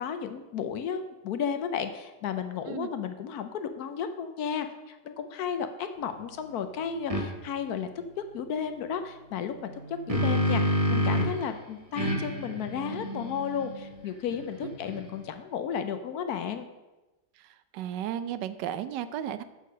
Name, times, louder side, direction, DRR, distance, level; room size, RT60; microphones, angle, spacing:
voice 1, 0.0-7.9 8.3-16.7, left 7 dB, 70° left, 9 dB, 1.1 m, -33 dB
sound 1, 7.1-7.3 9.7-11.4 12.0-15.3, equal, 20° right, 1.3 m, -29 dB
voice 2, 17.4-19.4, right 10 dB, 80° right, 13 dB, 1.2 m, -34 dB
6.6 x 6.5 x 6.4 m, 1.1 s
omnidirectional pair, 1.9 m